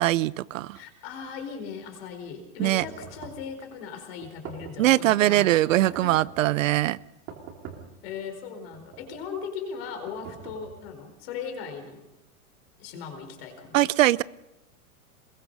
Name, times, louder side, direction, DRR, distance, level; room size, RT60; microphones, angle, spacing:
voice 1, 0.0-0.8 2.6-2.9 4.8-7.0 13.7-14.2, right 15 dB, 65° right, 0.6 m, -22 dB
voice 2, 0.7-6.1 8.0-12.0 12.8-13.9, left 6 dB, 45° left, 4.6 m, -38 dB
sound 1, 2.8-3.5 4.2-4.9 5.7-6.4 7.3-8.0 8.7-9.3 10.1-10.9, right 7 dB, 30° right, 3.3 m, -44 dB
22.5 x 21.5 x 5.4 m
supercardioid pair, 170°, 42 cm